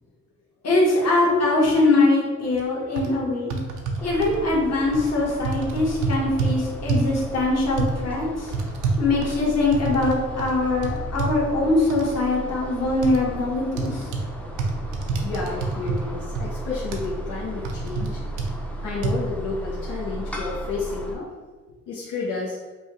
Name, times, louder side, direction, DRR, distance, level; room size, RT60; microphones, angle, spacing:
voice 1, 0.6-3.6 4.0-8.5 9.0-14.1, left 2 dB, 55° left, -3 dB, 1.3 m, -22 dB
sound 1, 2.5-2.6 3.0-3.1 3.5-4.4 4.9-5.1 5.4-6.5 6.9-7.2 7.8-7.9 8.5-10.1 10.4-10.5 10.8-11.3 11.9-12.0 13.0-13.2 13.8-14.3 14.6-16.0 16.4-16.5 16.9-17.1 17.6-18.1 18.4-18.5 19.0-19.1, right 4 dB, 90° right, 0.6 m, -26 dB
sound 2, 4.0-21.1, right 1 dB, 5° left, 0.5 m, -35 dB
voice 2, 15.2-18.2 18.8-21.3 21.9-22.6, left 4 dB, 85° left, -5 dB, 0.8 m, -30 dB
5.3 x 2.2 x 3.0 m, 1.3 s
cardioid pair, 90°, 30 cm